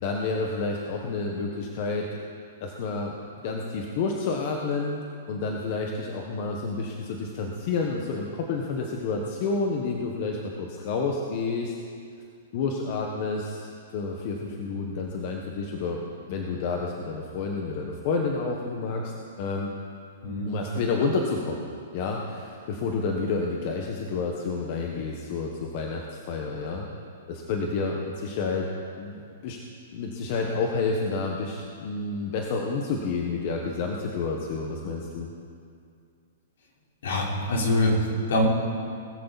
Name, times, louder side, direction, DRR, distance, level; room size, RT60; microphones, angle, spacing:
voice 1, 0.0-2.1 2.6-3.1 3.4-5.0 5.3-11.7 12.5-16.0 16.3-19.1 19.4-19.7 20.5-21.6 21.9-26.9 27.3-28.7 29.0-29.6 29.9-35.3, left 4 dB, 45° left, 1 dB, 1.5 m, -29 dB
voice 2, 37.0-38.5, left 1 dB, 70° left, -2 dB, 4.4 m, -24 dB
20.5 x 14.0 x 4.3 m, 2.4 s
hypercardioid pair, 160°, 0 cm